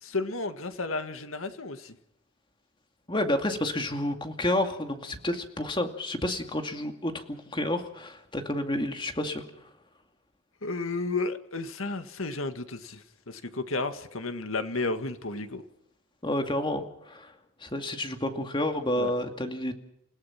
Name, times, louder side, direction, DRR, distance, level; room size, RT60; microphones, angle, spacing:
voice 1, 0.0-2.0 10.6-15.6 19.0-19.1, left 3 dB, 85° left, 8 dB, 1.9 m, -32 dB
voice 2, 3.1-9.4 16.2-17.3 17.6-19.7, left 1 dB, 25° left, 5 dB, 2.4 m, -30 dB
29.5 x 17.5 x 5.9 m, 0.80 s
head